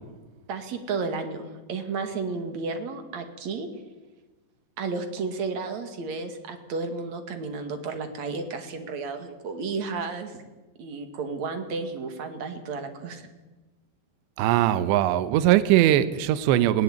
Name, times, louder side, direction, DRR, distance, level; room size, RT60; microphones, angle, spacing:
voice 1, 0.5-3.7 4.8-10.4 10.8-13.2, right 4 dB, 50° right, 7 dB, 2.7 m, -32 dB
voice 2, 14.4-16.8, right 13 dB, 80° right, 13 dB, 3.1 m, -20 dB
20.0 x 18.0 x 8.9 m, 1.2 s
omnidirectional pair, 5.2 m